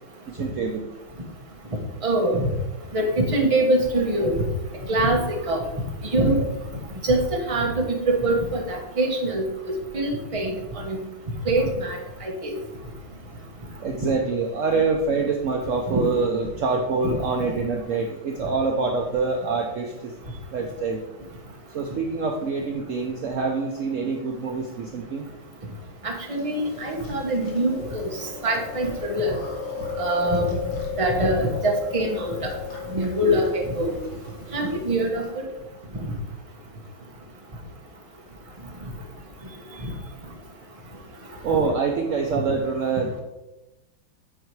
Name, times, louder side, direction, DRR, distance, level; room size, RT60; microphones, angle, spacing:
voice 1, 0.3-0.9 13.8-20.1 20.5-21.0 21.7-25.2 32.9-33.4 34.4-34.6 41.4-43.2, right 4 dB, 70° right, 1 dB, 0.7 m, -25 dB
voice 2, 2.0-2.5 2.9-4.4 4.9-5.6 6.1-6.4 7.0-10.5 10.8-11.0 11.5-12.6 15.9-16.0 17.0-17.1 26.0-28.1 28.4-29.4 30.0-30.6 31.0-32.5 32.9-33.9 34.5-35.4 36.0-36.1, right 1 dB, 25° right, 0 dB, 0.9 m, -24 dB
Chewing mastication, 26.3-35.3, left 6 dB, 65° left, 2.1 m, -35 dB
8.3 x 4.5 x 4.7 m, 1.0 s
omnidirectional pair, 2.2 m